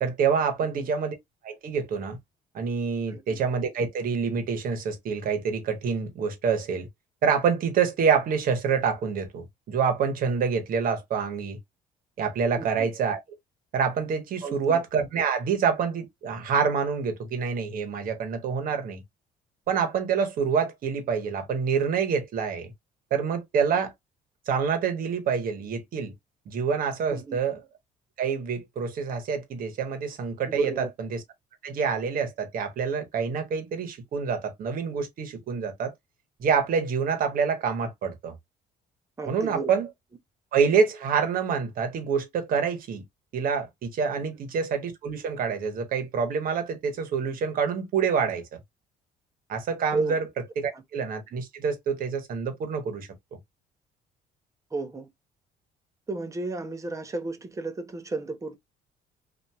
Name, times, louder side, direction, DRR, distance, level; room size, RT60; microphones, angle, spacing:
voice 1, 0.0-1.2 1.4-2.2 2.5-6.9 7.2-11.6 12.2-13.2 13.7-19.0 19.7-22.7 23.1-23.9 24.5-26.1 26.5-27.6 28.2-31.2 31.6-35.9 36.4-38.3 39.3-39.9 40.5-43.0 43.3-48.4 49.5-50.3 50.6-53.1, right 6 dB, 55° right, 1.1 m, -27 dB
voice 2, 3.1-3.4 12.6-12.9 14.4-14.8 27.1-27.4 30.5-30.9 39.2-39.7 44.2-44.3 49.9-50.2 54.7-55.1 56.1-58.5, right 3 dB, 20° right, 0.7 m, -32 dB
2.8 x 2.5 x 2.3 m
cardioid pair, 110°, 17 cm